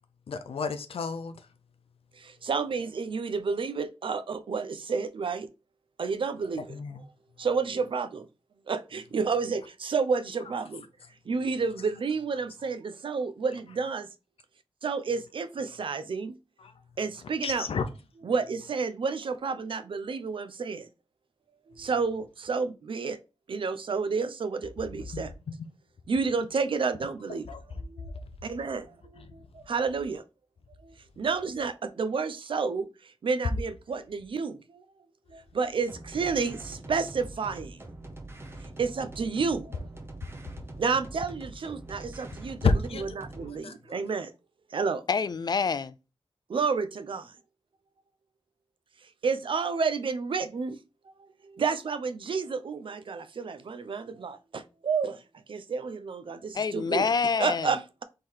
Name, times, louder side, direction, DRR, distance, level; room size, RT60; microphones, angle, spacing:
voice 1, 0.3-1.5 6.7-7.0 16.6-16.7 17.4-17.9 25.1-25.5 27.5-27.6 28.4-28.6 29.2-29.3 42.6-43.8, left 4 dB, 85° left, 0.6 m, -31 dB
voice 2, 2.2-5.5 6.0-6.8 7.4-8.3 8.7-10.9 11.3-14.1 14.8-16.4 17.0-17.7 18.2-20.9 21.7-23.2 23.5-25.3 26.1-27.5 27.8-28.1 28.4-30.2 30.8-34.8 35.3-37.8 38.8-39.8 40.8-42.6 43.0-44.3 44.7-45.0 46.5-47.3 49.2-50.8 51.2-55.2 55.5-57.1 57.4-58.0, right 5 dB, 65° right, 0.5 m, -30 dB
sound 1, 35.9-43.6, right 2 dB, 25° right, 0.8 m, -44 dB
voice 3, 45.1-45.9 56.5-57.7, left 5 dB, 45° left, 0.4 m, -27 dB
3.8 x 3.2 x 4.3 m
wide cardioid pair, 120°, 10 cm